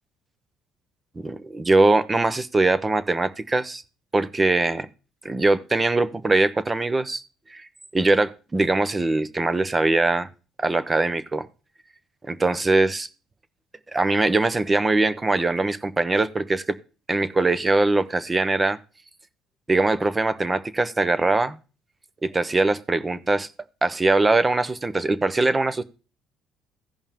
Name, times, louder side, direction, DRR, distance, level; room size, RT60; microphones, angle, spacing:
voice 1, 1.2-3.8 4.1-4.9 5.2-7.2 7.5-7.7 7.9-10.3 10.6-11.5 12.3-13.1 13.9-16.8 17.1-18.8 19.7-21.6 22.2-23.5 23.8-25.8, right 2 dB, 20° right, 14 dB, 0.8 m, -22 dB
15.5 x 5.4 x 3.6 m, 0.33 s
cardioid pair, 115°, 0 cm